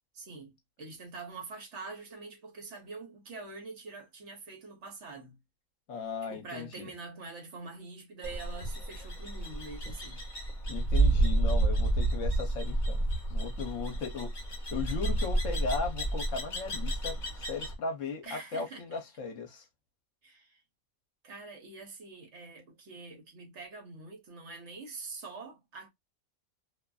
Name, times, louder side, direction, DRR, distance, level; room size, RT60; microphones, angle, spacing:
voice 1, 0.1-5.4 6.3-10.2 18.2-19.0 20.2-20.6 21.2-25.9, right 3 dB, 60° right, 1.1 m, -45 dB
voice 2, 5.9-6.9 10.7-13.0 13.3-14.3 14.7-19.6, left 5 dB, 65° left, 1.1 m, -37 dB
sound 1, 8.2-17.7, right 2 dB, 40° left, 1.0 m, -30 dB
2.7 x 2.4 x 2.2 m
omnidirectional pair, 1.5 m